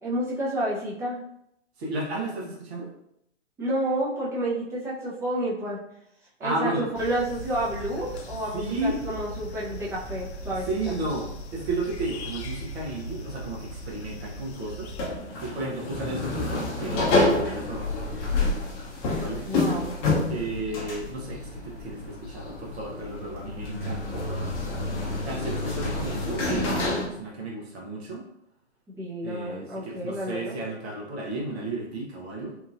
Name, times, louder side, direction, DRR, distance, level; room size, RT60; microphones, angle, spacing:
voice 1, 0.0-1.2 3.6-5.8 6.4-11.0 19.5-19.9 29.0-30.6, right 1 dB, 10° right, -7 dB, 0.5 m, -30 dB
voice 2, 1.8-2.9 6.4-6.9 8.5-9.0 10.7-14.9 15.4-17.9 19.2-19.5 20.3-24.7 25.2-28.2 29.2-32.5, right 2 dB, 60° right, -3 dB, 0.9 m, -33 dB
sound 1, 6.9-15.1, equal, 65° left, 0.5 m, -38 dB
sound 2, 15.0-27.1, left 2 dB, 30° left, 0.7 m, -28 dB
2.9 x 2.4 x 2.5 m, 0.77 s
figure-of-eight pair, 115°, 36 cm